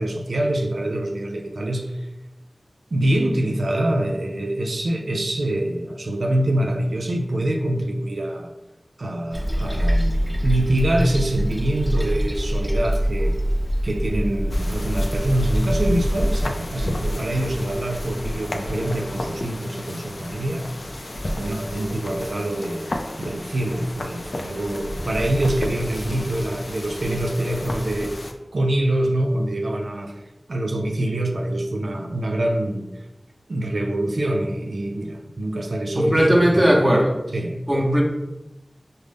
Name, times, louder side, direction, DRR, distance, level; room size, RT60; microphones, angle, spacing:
voice 1, 0.0-2.0 2.9-8.5 9.0-13.4 13.8-20.7 21.4-22.9 23.2-28.2 28.5-30.2 30.5-32.8 33.5-36.9 37.3-37.6, right 1 dB, 85° right, 1 dB, 0.4 m, -25 dB
Toilet flush, 9.3-16.5, equal, 10° left, 0.8 m, -24 dB
sound 1, 14.5-28.3, left 1 dB, 70° left, 0.4 m, -32 dB
voice 2, 36.0-37.1 37.7-38.0, equal, 20° right, -1 dB, 0.7 m, -17 dB
5.1 x 2.1 x 3.3 m, 0.99 s
wide cardioid pair, 65°, 0 cm